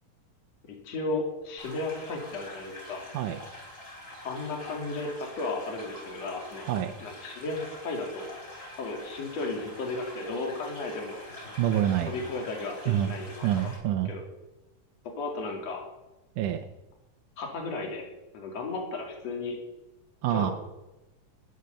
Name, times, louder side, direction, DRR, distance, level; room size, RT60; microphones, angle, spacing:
voice 1, 0.7-3.1 4.2-6.7 7.0-8.2 8.8-11.2 12.1-13.5 14.1-14.2 15.1-15.8 17.4-18.0 18.3-19.6 20.3-20.5, left 3 dB, 55° left, 1 dB, 3.6 m, -34 dB
sound 1, 1.6-13.8, left 1 dB, 20° left, 3.8 m, -45 dB
voice 2, 11.6-12.1 12.9-13.1 13.4-14.1 16.4-16.6 20.2-20.5, right 11 dB, 80° right, 4 dB, 2.3 m, -26 dB
19.5 x 8.1 x 6.9 m, 1.0 s
omnidirectional pair, 3.7 m